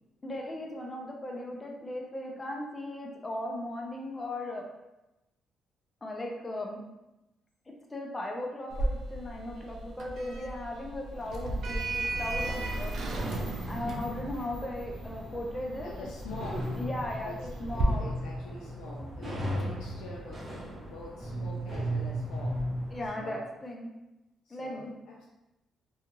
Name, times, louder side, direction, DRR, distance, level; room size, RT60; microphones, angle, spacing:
voice 1, 0.2-4.6 6.0-6.8 7.7-12.9 13.7-15.9 16.7-17.3 17.6-18.1 22.9-23.9 24.5-24.9, left 1 dB, 25° left, -1 dB, 0.5 m, -37 dB
Sliding door, 8.7-17.8, right 2 dB, 65° right, 0.4 m, -36 dB
sound 1, 13.1-23.1, right 1 dB, 30° right, 0.7 m, -36 dB
voice 2, 15.8-16.8 17.2-20.5 20.8-22.6 23.1-23.5 24.4-25.3, left 2 dB, 90° left, -3 dB, 0.4 m, -45 dB
2.4 x 2.4 x 2.9 m, 0.96 s
cardioid pair, 90°, 0 cm